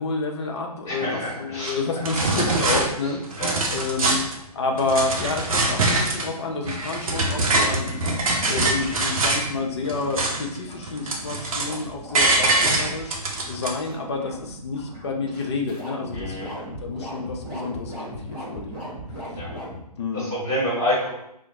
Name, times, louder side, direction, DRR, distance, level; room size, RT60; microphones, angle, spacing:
voice 1, 0.0-3.4 3.7-13.2 13.5-16.5 16.8-18.9 20.0-20.3, left 3 dB, 45° left, 2 dB, 0.4 m, -29 dB
voice 2, 0.9-1.8 2.2-2.5 3.4-3.6 16.1-16.5 19.3-19.5 20.1-21.1, equal, 10° left, -8 dB, 1.1 m, -27 dB
sound 1, 1.6-1.7 2.0-2.8 3.2-4.4 4.8-6.3 6.6-9.5 9.8-10.6 10.8-11.8 12.1-13.7, right 2 dB, 60° right, 0.6 m, -23 dB
sound 2, 3.2-19.8, equal, 30° right, 1.4 m, -39 dB
2.8 x 2.1 x 2.6 m, 0.78 s
figure-of-eight pair, 130°, 20 cm